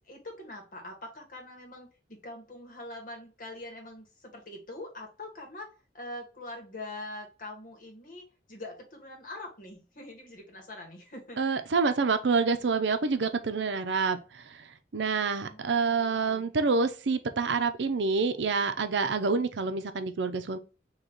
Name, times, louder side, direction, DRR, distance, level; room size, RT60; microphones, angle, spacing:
voice 1, 0.0-5.7 5.9-11.8 15.4-16.5, left 1 dB, 50° left, 1.6 m, -44 dB
voice 2, 11.4-20.6, right 4 dB, 85° right, 0.6 m, -27 dB
3.9 x 2.9 x 4.4 m
head